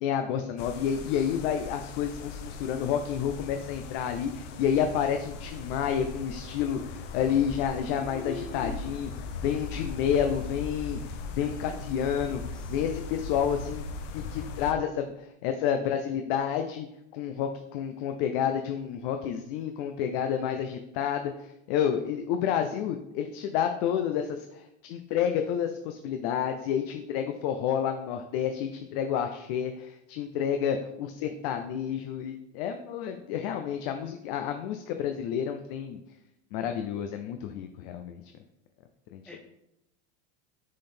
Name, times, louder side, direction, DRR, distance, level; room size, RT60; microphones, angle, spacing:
voice 1, 0.0-9.1 9.4-11.0 11.4-12.4 12.7-13.8 14.1-16.9 17.1-21.3 21.7-36.0 36.5-38.2 39.1-39.2, left 8 dB, 55° left, 6 dB, 0.5 m, -29 dB
sound 1, 0.6-14.7, left 4 dB, 90° left, 0.8 m, -39 dB
voice 2, 7.8-8.9 12.2-12.8 39.3-39.4, left 2 dB, 5° left, 2 dB, 0.6 m, -41 dB
6.2 x 3.9 x 4.3 m, 0.84 s
supercardioid pair, 150°, 36 cm